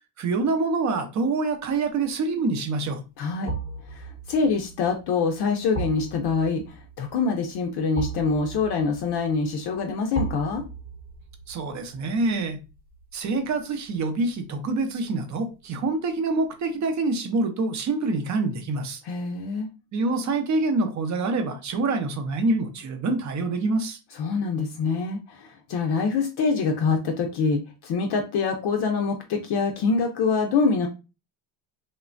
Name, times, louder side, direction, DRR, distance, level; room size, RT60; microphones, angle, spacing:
voice 1, 0.2-3.0 11.5-12.6 13.1-19.0 19.9-24.0, right 3 dB, 35° right, 6 dB, 0.6 m, -26 dB
sound 1, 1.9-2.1 3.5-14.5 14.8-14.9, right 3 dB, 20° right, 0.9 m, -37 dB
voice 2, 3.2-3.5 3.9-10.6 19.0-19.7 24.2-30.9, left 4 dB, 55° left, 3 dB, 0.5 m, -25 dB
3.1 x 2.2 x 2.4 m, 0.29 s
cardioid pair, 125°, 50 cm